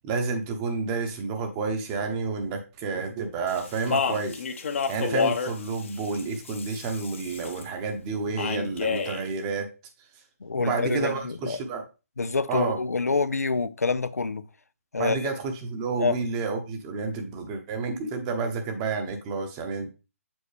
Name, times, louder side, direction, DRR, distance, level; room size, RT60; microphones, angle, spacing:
voice 1, 0.0-4.4 4.9-9.7 10.6-11.8 12.5-12.8 15.0-19.9, right 4 dB, 20° right, 1.0 m, -30 dB
Speech, 3.5-7.6 8.4-9.2, left 5 dB, 55° left, 1.0 m, -30 dB
voice 2, 10.4-11.6 12.2-14.4 14.9-15.3 16.0-16.2, left 4 dB, 85° left, 0.5 m, -27 dB
7.2 x 4.2 x 3.3 m
figure-of-eight pair, 145°, 8 cm